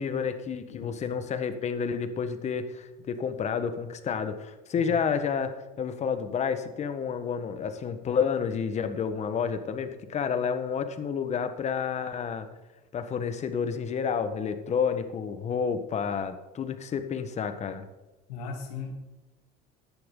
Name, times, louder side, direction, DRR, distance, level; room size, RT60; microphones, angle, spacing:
voice 1, 0.0-12.5 12.9-17.9, left 6 dB, 35° left, 9 dB, 1.4 m, -30 dB
voice 2, 0.7-1.3 4.8-4.9 18.3-18.9, left 4 dB, 90° left, 2 dB, 3.1 m, -38 dB
15.0 x 10.5 x 3.9 m, 1.1 s
supercardioid pair, 110°, 19 cm